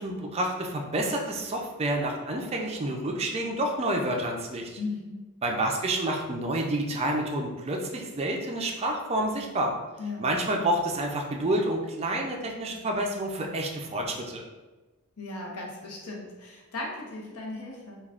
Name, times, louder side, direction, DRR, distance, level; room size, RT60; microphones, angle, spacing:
voice 1, 0.0-4.8 5.4-9.7 10.2-14.4, right 1 dB, 30° right, 1 dB, 0.4 m, -29 dB
voice 2, 4.8-5.2 10.0-10.2 15.2-18.0, left 3 dB, 85° left, -2 dB, 0.7 m, -37 dB
3.4 x 2.3 x 2.4 m, 1.2 s
head